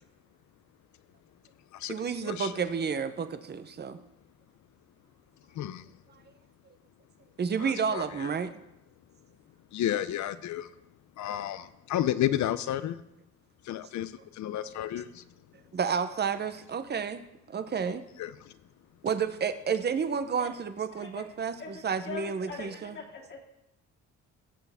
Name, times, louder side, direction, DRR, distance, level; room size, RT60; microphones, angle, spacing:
voice 1, 1.9-4.0 7.4-8.5 15.7-17.2 17.5-18.0 19.0-23.0, right 6 dB, 35° right, 11 dB, 0.8 m, -31 dB
voice 2, 5.5-5.8 7.6-8.3 9.7-10.7 11.2-13.0 13.6-15.3 18.2-18.6, left 12 dB, 70° left, 14 dB, 0.6 m, -32 dB
voice 3, 21.6-23.4, left 4 dB, 40° left, 0 dB, 2.3 m, -42 dB
15.5 x 6.9 x 3.5 m, 0.87 s
cardioid pair, 90°, 30 cm